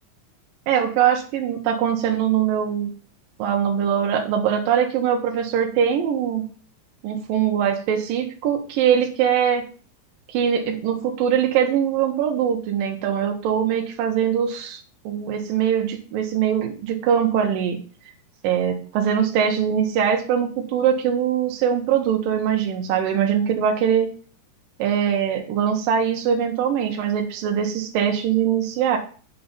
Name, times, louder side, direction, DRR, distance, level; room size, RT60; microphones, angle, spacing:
voice 1, 0.7-2.9 3.4-6.4 7.0-9.7 10.3-14.8 15.1-17.8 18.4-24.1 24.8-29.0, right 8 dB, 85° right, 2 dB, 2.8 m, -22 dB
9.2 x 5.8 x 4.0 m, 0.40 s
omnidirectional pair, 4.0 m